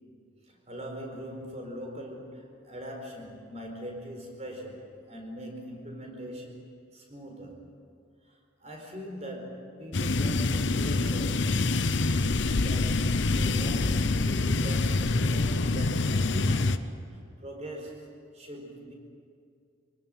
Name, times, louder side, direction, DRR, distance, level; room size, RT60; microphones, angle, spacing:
voice 1, 0.5-7.6 8.3-12.0 12.4-16.8 17.4-18.9, equal, 35° right, 2 dB, 4.4 m, -41 dB
sound 1, 9.9-16.8, left 3 dB, 70° left, 0.8 m, -26 dB
24.5 x 18.5 x 9.2 m, 2.3 s
head